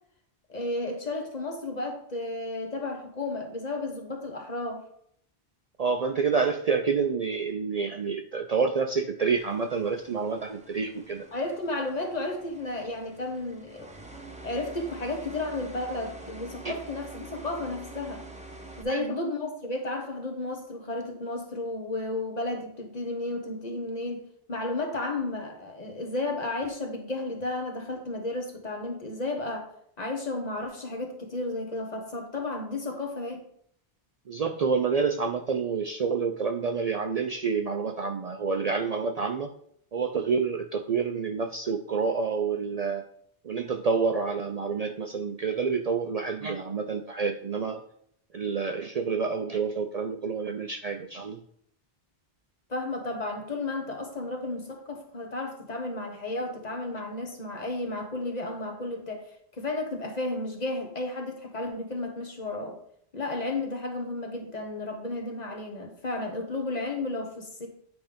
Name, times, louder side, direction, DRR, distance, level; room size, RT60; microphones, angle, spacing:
voice 1, 0.5-4.8 11.3-13.9 14.4-18.2 18.8-29.7 30.0-33.4 52.7-59.2 59.5-62.8 63.1-67.7, left 2 dB, 45° left, 3 dB, 1.3 m, -33 dB
voice 2, 5.8-11.3 16.6-16.8 18.9-19.2 34.3-39.5 39.9-43.0 43.4-47.8 48.3-51.4, right 5 dB, 50° right, 5 dB, 0.5 m, -28 dB
sound 1, 9.4-18.8, right 2 dB, 10° right, 0.8 m, -46 dB
8.7 x 3.6 x 5.0 m, 0.67 s
omnidirectional pair, 1.0 m